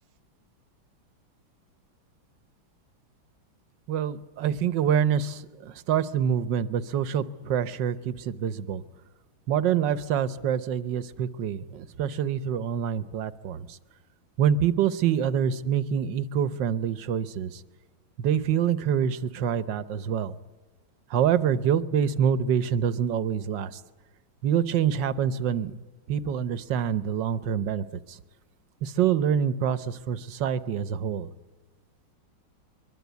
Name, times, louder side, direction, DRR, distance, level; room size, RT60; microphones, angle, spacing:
voice 1, 3.9-8.8 9.5-13.8 14.4-17.6 18.2-20.3 21.1-23.8 24.4-25.8 26.1-28.2 28.8-31.3, right 8 dB, 65° right, 14 dB, 1.5 m, -26 dB
24.0 x 22.5 x 8.2 m, 1.3 s
omnidirectional pair, 2.3 m